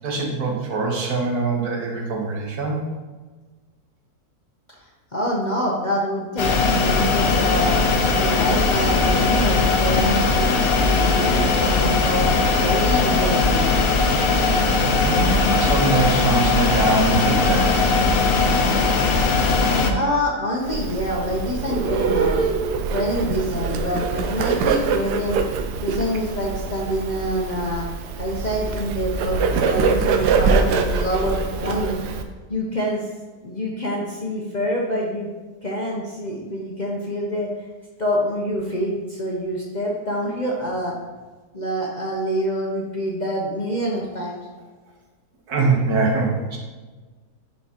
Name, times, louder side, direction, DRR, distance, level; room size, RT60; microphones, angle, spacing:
voice 1, 0.0-2.8 15.0-17.9 45.5-46.6, right 3 dB, 70° right, -1 dB, 1.7 m, -23 dB
voice 2, 5.1-7.8 8.2-10.5 10.8-13.7 19.9-22.5 22.9-25.5 25.8-27.9 28.2-32.0 32.5-33.1 33.4-35.3 35.6-37.5 38.0-41.0 41.5-44.4, equal, 35° left, -3 dB, 0.8 m, -26 dB
sound 1, 6.4-19.9, left 3 dB, 65° left, 1.2 m, -19 dB
Bird, 20.6-32.2, right 5 dB, 85° right, 1.2 m, -24 dB
10.5 x 4.3 x 2.9 m, 1.3 s
omnidirectional pair, 1.7 m